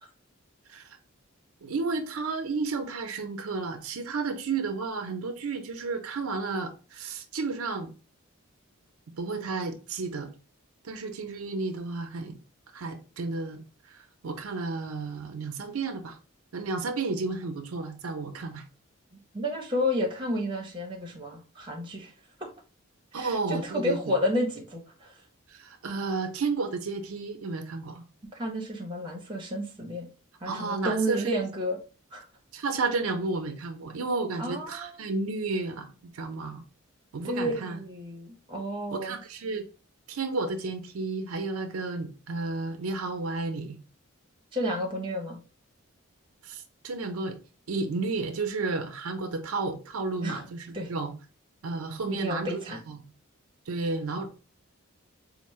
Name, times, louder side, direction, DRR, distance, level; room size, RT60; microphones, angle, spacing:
voice 1, 1.6-7.9 9.2-10.3 10.8-12.4 12.7-16.2 16.5-18.6 23.1-24.2 25.5-28.0 30.5-31.5 32.5-36.6 37.1-37.8 38.9-39.7 40.1-43.8 46.4-47.4 47.7-51.1 51.6-53.1 53.7-54.4, right 3 dB, 80° right, 0.5 m, -32 dB
voice 2, 19.1-22.1 23.1-25.1 28.3-30.1 30.4-31.8 32.1-32.2 34.4-34.9 37.2-39.2 44.5-45.4 50.2-50.4 50.7-50.9 52.1-52.8, equal, 20° right, 0.7 m, -31 dB
4.4 x 2.0 x 3.0 m
head